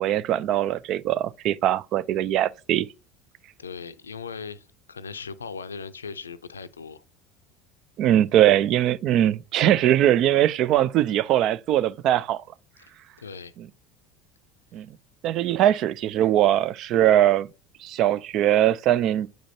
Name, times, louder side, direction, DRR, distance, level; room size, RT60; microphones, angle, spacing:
voice 1, 0.0-2.9 8.0-12.4 14.7-14.9 15.2-17.5 17.8-19.3, right 12 dB, 50° right, 0.4 m, -21 dB
voice 2, 3.6-7.0 12.8-12.9 13.2-13.5, left 5 dB, 80° left, 0.5 m, -38 dB
9.0 x 5.1 x 2.7 m
figure-of-eight pair, 70°, 0 cm